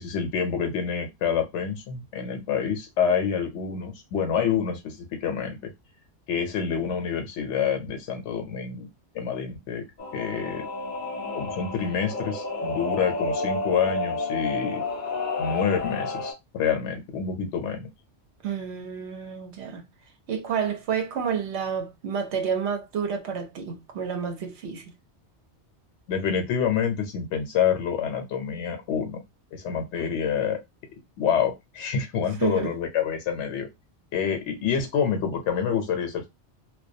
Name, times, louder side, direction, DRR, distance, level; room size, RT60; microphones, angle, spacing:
voice 1, 0.0-5.7 6.3-8.9 9.1-9.8 10.1-10.7 11.3-14.8 15.4-17.9 26.1-29.2 29.5-30.6 31.2-33.7 34.1-36.3, left 7 dB, 85° left, 0.9 m, -27 dB
Singing / Musical instrument, 10.0-16.3, left 3 dB, 50° left, 0.9 m, -30 dB
voice 2, 18.4-19.8 20.3-24.8 32.4-32.7, right 7 dB, 75° right, 0.9 m, -29 dB
2.2 x 2.2 x 2.6 m
omnidirectional pair, 1.2 m